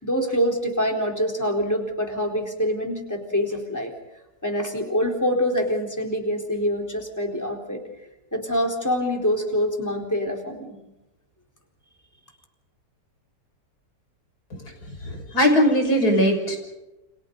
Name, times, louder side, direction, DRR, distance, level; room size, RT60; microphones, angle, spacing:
voice 1, 0.0-3.9 4.4-7.8 8.3-10.8, equal, 10° left, 1 dB, 4.2 m, -25 dB
voice 2, 15.0-16.6, equal, 60° left, 2 dB, 6.7 m, -20 dB
30.0 x 27.0 x 4.1 m, 0.95 s
omnidirectional pair, 1.9 m